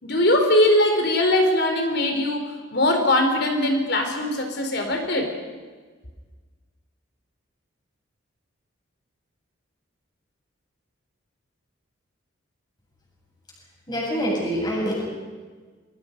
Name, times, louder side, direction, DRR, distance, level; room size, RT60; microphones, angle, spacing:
voice 1, 0.0-5.3, left 1 dB, 50° left, 4 dB, 4.1 m, -21 dB
voice 2, 13.9-14.9, equal, 20° left, -3 dB, 7.8 m, -25 dB
27.5 x 23.5 x 5.4 m, 1.4 s
head